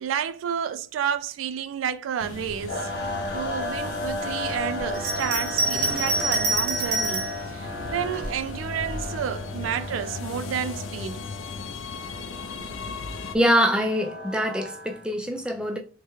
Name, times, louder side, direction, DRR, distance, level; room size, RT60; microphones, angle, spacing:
voice 1, 0.0-2.9 3.3-11.2, right 8 dB, 85° right, 0.3 m, -30 dB
sound 1, 2.2-13.3, left 3 dB, 90° left, 0.4 m, -37 dB
sound 2, 2.7-15.0, left 2 dB, 55° left, 0.9 m, -35 dB
Bell, 4.9-7.4 8.1-9.0, right 2 dB, 50° right, 0.7 m, -27 dB
voice 2, 13.3-15.8, equal, 5° right, 0.3 m, -24 dB
3.4 x 2.1 x 3.0 m
head